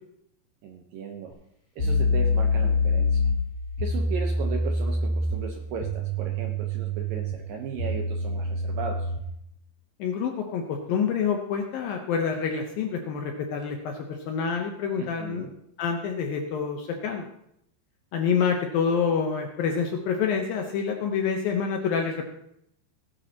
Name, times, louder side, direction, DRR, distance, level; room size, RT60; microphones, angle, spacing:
voice 1, 0.6-1.3 1.8-3.3 3.8-9.1 15.0-15.5, right 6 dB, 75° right, 2 dB, 2.2 m, -36 dB
sound 1, 1.3-1.4 1.8-9.3, left 2 dB, 25° left, 3.8 m, -26 dB
voice 2, 10.0-15.5 15.8-17.2 18.1-22.2, left 6 dB, 75° left, 3 dB, 2.2 m, -27 dB
18.5 x 11.0 x 2.9 m, 0.76 s
omnidirectional pair, 5.0 m